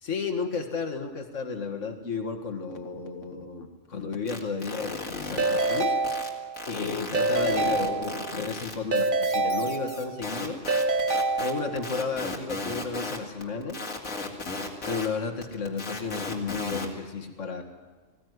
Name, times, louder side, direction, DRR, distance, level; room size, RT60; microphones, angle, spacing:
voice 1, 0.0-5.9 6.7-10.6 11.4-13.8 14.8-17.6, left 4 dB, 65° left, 5 dB, 2.2 m, -33 dB
sound 1, 4.3-6.3 6.5-15.1 15.4-16.8, left 3 dB, 90° left, 3.0 m, -35 dB
Keyboard (musical) / Ringtone, 5.4-6.7 7.1-8.5 8.9-10.3 10.7-12.0, right 3 dB, 45° right, 1.0 m, -27 dB
21.0 x 16.0 x 9.6 m, 1.3 s
omnidirectional pair, 1.4 m